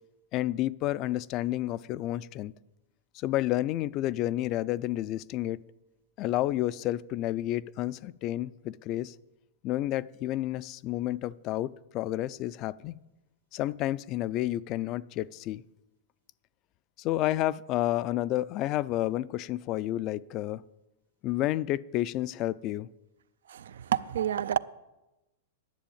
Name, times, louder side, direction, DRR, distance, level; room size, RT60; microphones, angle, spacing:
voice 1, 0.3-2.5 3.1-5.6 6.2-9.1 9.6-13.0 13.5-15.6 17.0-20.6 21.2-22.9, left 15 dB, 35° left, 19 dB, 0.3 m, -30 dB
voice 2, 23.5-24.6, right 10 dB, 85° right, 17 dB, 0.4 m, -29 dB
10.5 x 7.0 x 8.6 m, 1.0 s
hypercardioid pair, 140°, 0 cm